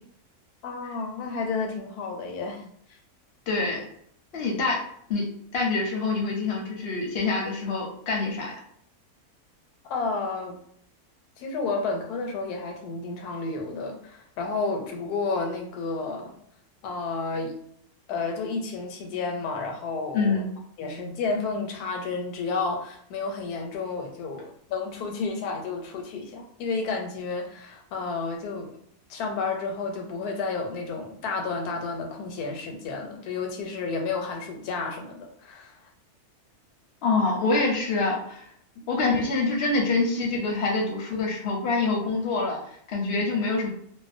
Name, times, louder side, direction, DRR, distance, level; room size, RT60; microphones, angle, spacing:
voice 1, 0.6-2.7 9.9-10.6 11.4-16.3 16.8-17.5 18.1-20.4 20.8-28.7 29.1-35.8, left 4 dB, 85° left, 2 dB, 1.1 m, -31 dB
voice 2, 3.5-3.8 4.3-4.8 5.1-8.6 20.1-20.5 37.0-38.4 38.9-42.6 42.9-43.7, left 3 dB, 55° left, 0 dB, 0.7 m, -25 dB
2.6 x 2.1 x 2.5 m, 0.67 s
omnidirectional pair, 1.6 m